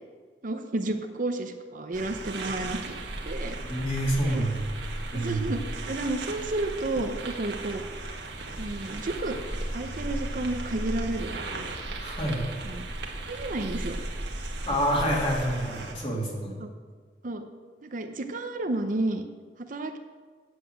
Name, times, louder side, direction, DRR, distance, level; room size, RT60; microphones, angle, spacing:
voice 1, 0.4-2.9 3.2-3.6 4.2-4.4 5.1-7.8 8.6-9.4 9.7-11.8 12.6-12.8 13.3-14.0 16.6-16.7 17.2-17.4 17.8-19.2 19.6-20.0, right 2 dB, 50° right, 6 dB, 0.7 m, -31 dB
sound 1, 1.9-15.9, right 2 dB, 80° right, 1.5 m, -36 dB
voice 2, 3.6-4.7 5.1-5.5 12.0-12.5 14.7-16.5, equal, 35° left, -3 dB, 2.7 m, -28 dB
8.2 x 7.9 x 7.9 m, 1.5 s
head